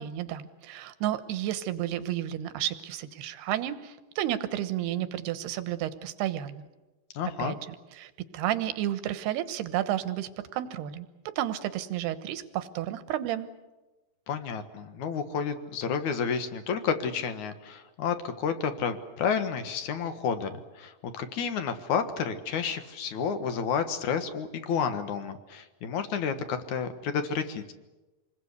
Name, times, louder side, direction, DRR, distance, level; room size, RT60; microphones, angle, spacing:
voice 1, 0.0-6.7 7.4-7.6 8.0-11.1 11.4-13.5, right 12 dB, 85° right, 12 dB, 3.2 m, -32 dB
voice 2, 7.1-7.6 14.3-27.6, left 6 dB, 60° left, 9 dB, 2.4 m, -30 dB
27.0 x 20.5 x 8.2 m, 1.1 s
omnidirectional pair, 4.6 m